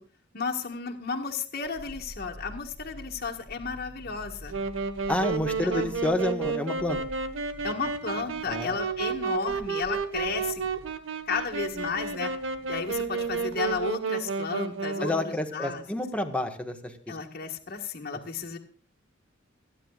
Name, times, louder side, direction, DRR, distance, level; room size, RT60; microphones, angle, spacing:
voice 1, 0.3-4.6 5.6-5.8 7.6-10.6 11.3-12.3 12.7-15.8 17.1-18.6, left 5 dB, 50° left, 1 dB, 1.8 m, -33 dB
sound 1, 1.6-14.0 14.3-14.4, left 1 dB, 40° right, 8.0 m, -48 dB
Wind instrument woodwind instrument, 4.5-15.4, right 5 dB, 75° right, 1.6 m, -31 dB
voice 2, 5.1-7.0 8.5-8.8 15.0-17.2, left 1 dB, 5° left, 4 dB, 1.6 m, -29 dB
29.5 x 10.0 x 2.5 m, 0.41 s
head